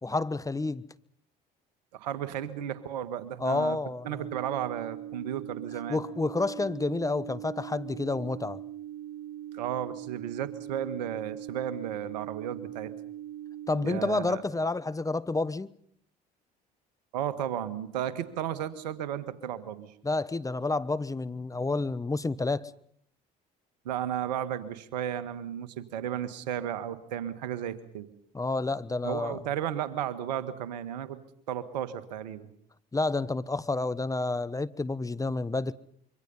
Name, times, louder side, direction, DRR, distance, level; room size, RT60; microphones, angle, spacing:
voice 1, 0.0-0.8 3.4-4.3 5.9-8.6 13.7-15.7 20.0-22.7 28.3-29.4 32.9-35.7, left 3 dB, 15° left, 1.0 m, -29 dB
voice 2, 1.9-3.8 4.0-6.0 9.5-12.9 13.8-14.4 17.1-19.9 23.8-28.1 29.0-31.2 31.5-32.5, right 10 dB, 85° right, 1.7 m, -34 dB
sound 1, 4.0-14.0, right 12 dB, 70° right, 1.7 m, -41 dB
26.5 x 24.0 x 5.5 m
hypercardioid pair, 65°, 21 cm